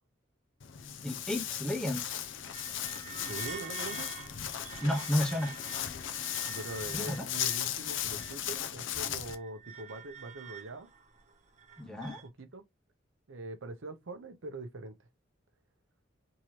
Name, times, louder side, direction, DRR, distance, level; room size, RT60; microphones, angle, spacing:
Walk footsteps, 0.6-9.3, left 10 dB, 70° left, 0.5 m, -37 dB
voice 1, 1.0-2.1 4.8-5.5 6.9-7.3 11.8-12.2, left 1 dB, 5° left, 0.8 m, -32 dB
sound 1, 2.0-8.6 9.0-12.3, right 7 dB, 40° right, 0.7 m, -48 dB
voice 2, 3.3-4.1 6.4-10.9 12.2-12.6 13.3-15.0, right 2 dB, 85° right, 0.7 m, -43 dB
3.6 x 2.9 x 3.0 m
head